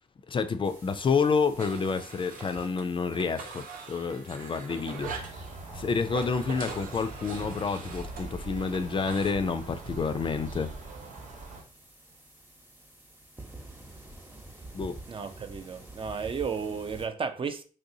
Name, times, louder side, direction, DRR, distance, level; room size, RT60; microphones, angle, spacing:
voice 1, 0.3-5.4 5.7-10.7 14.7-15.0, left 5 dB, 35° left, 0.4 m, -29 dB
sound 1, 0.6-17.1, right 2 dB, 15° right, 0.9 m, -51 dB
sound 2, 1.6-2.8 3.1-5.4 6.0-9.3, right 5 dB, 80° right, 0.7 m, -42 dB
sound 3, 5.0-11.6, right 2 dB, 60° right, 1.1 m, -42 dB
voice 2, 15.1-17.6, right 5 dB, 35° right, 0.5 m, -33 dB
3.3 x 2.7 x 2.7 m
cardioid pair, 60°, 14 cm